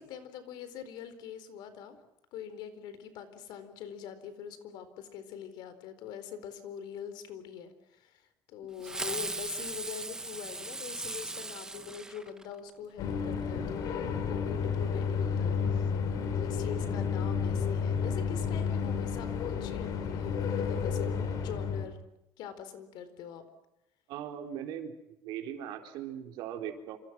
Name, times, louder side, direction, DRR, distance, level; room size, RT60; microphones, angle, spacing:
voice 1, 0.0-2.0 2.3-15.9 16.4-21.1 21.3-22.0 22.4-23.4, left 8 dB, 75° left, 11 dB, 4.2 m, -44 dB
Fireworks, 8.8-12.7, right 2 dB, 10° right, 1.2 m, -38 dB
sound 1, 13.0-21.8, left 6 dB, 55° left, 3.9 m, -31 dB
voice 2, 24.1-24.9 25.2-27.0, right 9 dB, 85° right, 4 dB, 4.0 m, -39 dB
28.0 x 27.0 x 6.2 m, 0.88 s
cardioid pair, 175°, 7 cm